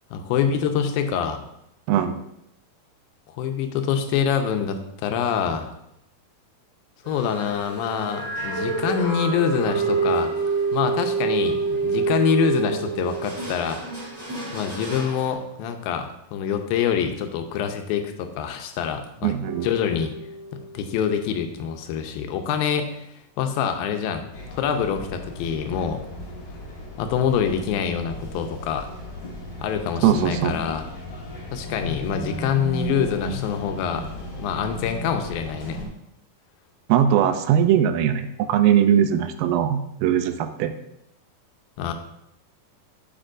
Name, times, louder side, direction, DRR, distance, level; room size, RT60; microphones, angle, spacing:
voice 1, 0.1-1.4 3.4-5.7 7.1-10.3 10.7-13.8 14.5-19.3 19.6-20.1 20.5-23.0 23.4-24.3 24.6-26.0 27.0-28.9 29.6-30.9 31.5-34.1 34.4-35.8 41.8-41.9, left 7 dB, 85° left, 6 dB, 2.5 m, -25 dB
sound 1, 7.0-15.3, right 4 dB, 10° right, 2.8 m, -27 dB
voice 2, 19.2-19.7 30.0-30.6 36.9-40.7, right 10 dB, 85° right, 9 dB, 2.3 m, -20 dB
sound 2, 19.4-22.0, right 1 dB, 40° right, 2.6 m, -40 dB
sound 3, 24.3-35.8, left 1 dB, 60° left, 3.3 m, -35 dB
9.8 x 7.3 x 2.6 m, 0.81 s
omnidirectional pair, 4.1 m